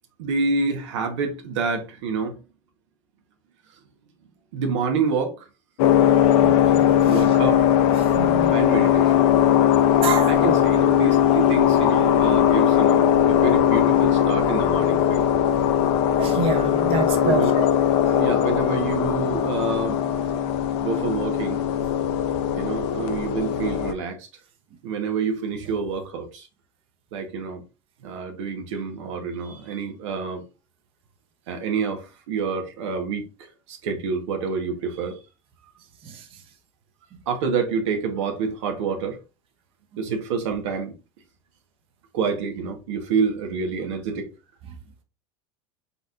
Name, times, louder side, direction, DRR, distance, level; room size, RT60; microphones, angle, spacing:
voice 1, 0.2-2.4 4.5-5.5 7.1-7.7 8.5-9.2 10.3-15.2 17.2-17.7 18.1-20.0 20.8-21.6 22.5-24.3 24.8-26.5 27.1-27.6 28.0-30.4 31.5-33.2 33.7-35.2 37.3-39.2 40.0-40.9 42.1-44.3, right 5 dB, 90° right, 1.2 m, -27 dB
sound 1, 5.8-23.9, left 10 dB, 75° left, 0.6 m, -19 dB
voice 2, 6.4-7.2 8.1-8.5 10.0-10.6 16.2-17.7 18.1-18.2 36.0-36.2, right 4 dB, 40° right, 0.8 m, -28 dB
4.1 x 4.1 x 2.5 m
supercardioid pair, 130°, 15 cm